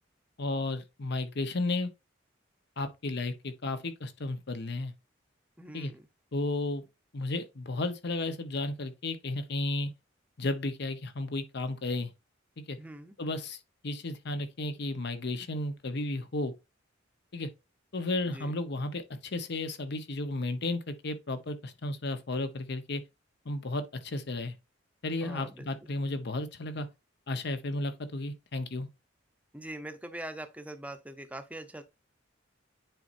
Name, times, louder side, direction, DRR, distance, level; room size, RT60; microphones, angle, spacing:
voice 1, 0.4-1.9 2.8-4.9 5.7-5.9 6.3-6.8 7.1-9.9 10.4-12.1 12.7-12.8 13.2-13.6 13.8-16.5 17.3-17.5 17.9-23.0 23.4-24.5 25.0-26.9 27.3-28.9, left 2 dB, 60° left, 0.9 m, -33 dB
voice 2, 5.6-6.0 12.8-13.1 18.3-18.6 25.2-25.7 29.5-31.8, right 1 dB, 5° right, 0.7 m, -43 dB
9.1 x 4.2 x 2.6 m
head